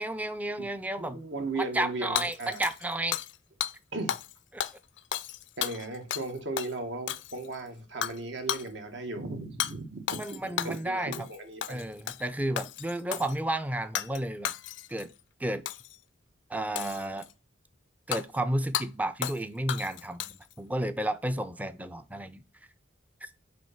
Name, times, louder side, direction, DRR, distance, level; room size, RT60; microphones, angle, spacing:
voice 1, 0.0-1.2 1.6-3.2 10.2-11.3 11.7-14.5 14.9-15.1 15.4-15.6 16.5-17.3 18.1-22.4 23.2-23.3, right 1 dB, 10° right, 0.4 m, -32 dB
voice 2, 1.0-2.6 3.9-4.2 5.6-11.8, right 2 dB, 75° right, 1.4 m, -36 dB
Hammer / Shatter, 2.2-3.4 3.6-3.7 4.1-4.3 4.6-6.3 6.6-6.7 7.1-7.5 8.0-8.2 8.5-8.7 9.6-9.7 10.1-10.8 11.1-11.4 11.6-12.2 12.6-13.4 13.9-14.2 14.4-15.0 15.7-16.0 16.8-17.3 18.1-18.2 18.7-18.9 19.2-19.4 19.7-20.5, left 10 dB, 75° left, 0.4 m, -33 dB
7.5 x 3.1 x 5.7 m
head